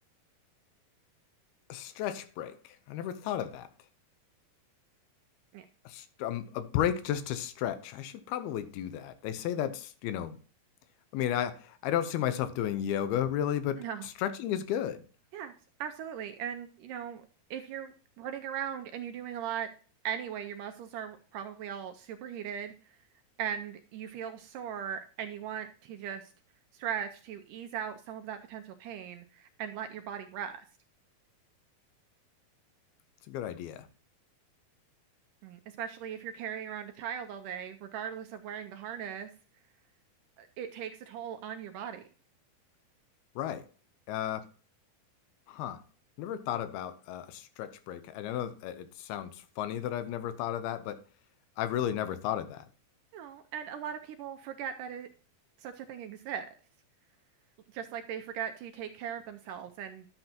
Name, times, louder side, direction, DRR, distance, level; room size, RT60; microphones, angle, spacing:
voice 1, 1.7-3.7 5.9-10.4 11.1-15.0 33.3-33.9 43.4-43.6 44.1-44.5 45.5-45.8 46.2-51.0 51.6-52.7, left 10 dB, 85° left, 2.8 m, -33 dB
voice 2, 15.8-17.2 17.5-19.7 20.0-22.7 23.4-26.3 26.7-30.7 35.4-39.3 40.4-42.0 53.1-55.1 55.6-56.6 57.7-60.1, right 9 dB, 80° right, 1.9 m, -39 dB
11.0 x 7.8 x 2.9 m
omnidirectional pair, 4.3 m